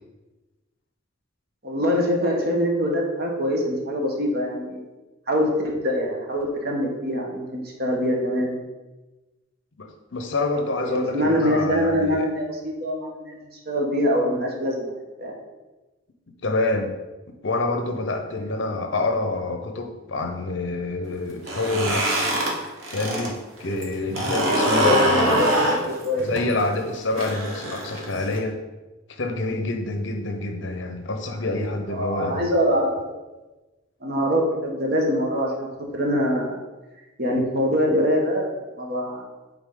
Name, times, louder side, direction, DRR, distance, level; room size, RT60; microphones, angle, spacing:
voice 1, 1.6-4.9 5.3-8.6 10.8-14.9 15.2-15.4 24.6-26.3 31.9-33.0 34.0-35.7 35.9-36.6 37.2-39.2, equal, 50° right, 0 dB, 1.2 m, -24 dB
voice 2, 9.8-12.3 16.4-17.0 17.4-22.3 22.9-25.5 26.2-28.6 29.1-32.5, left 2 dB, 60° left, 5 dB, 0.8 m, -27 dB
sound 1, 21.3-23.3 23.6-28.4, right 1 dB, 80° right, 1.2 m, -23 dB
8.6 x 3.5 x 3.8 m, 1.1 s
head